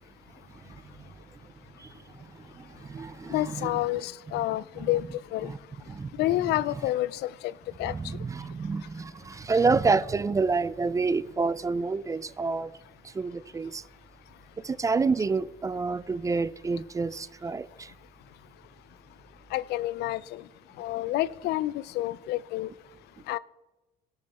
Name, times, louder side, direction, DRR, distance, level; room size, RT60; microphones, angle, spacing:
voice 1, 2.6-3.8 4.8-4.9 5.4-5.6 5.9-6.1 7.8-12.7 13.1-13.8 14.6-17.9, right 4 dB, 20° right, 0.4 m, -28 dB
voice 2, 3.3-5.5 6.2-7.5 7.8-7.9 19.5-20.4 20.8-22.7 23.3-23.4, left 16 dB, 80° left, 0.4 m, -29 dB
17.0 x 6.8 x 4.2 m
cardioid pair, 110°, 17 cm